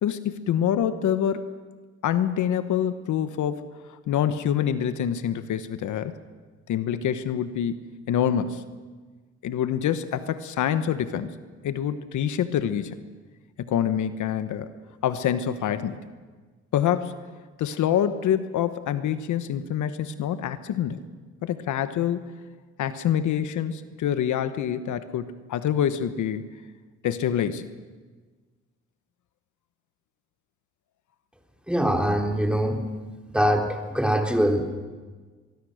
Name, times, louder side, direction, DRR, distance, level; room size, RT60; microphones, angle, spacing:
voice 1, 0.0-1.5 2.0-3.7 4.1-6.1 6.7-8.6 9.4-11.3 11.6-13.0 13.6-14.7 15.0-16.0 16.7-17.3 17.6-21.0 21.4-22.3 22.8-26.5 27.0-27.7, left 9 dB, 75° left, 11 dB, 1.3 m, -26 dB
voice 2, 31.7-32.8 33.3-34.6, equal, 5° right, 3 dB, 3.5 m, -23 dB
24.0 x 22.0 x 6.5 m, 1.4 s
cardioid pair, 90°, 30 cm